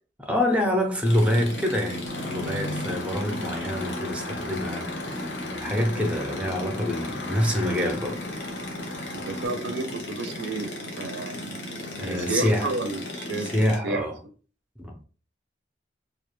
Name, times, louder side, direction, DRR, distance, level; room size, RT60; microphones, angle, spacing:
voice 1, 0.2-4.9 5.6-8.2 12.0-12.7 13.4-14.2 14.8-15.0, equal, 5° right, 0.4 m, -26 dB
sound 1, 1.0-13.8, left 1 dB, 85° left, 0.8 m, -35 dB
Car passing by / Accelerating revving vroom, 2.0-9.5, left 2 dB, 60° left, 0.4 m, -39 dB
voice 2, 9.1-11.5 12.0-13.5 13.8-14.1, right 3 dB, 70° right, 0.4 m, -31 dB
2.3 x 2.1 x 3.0 m
head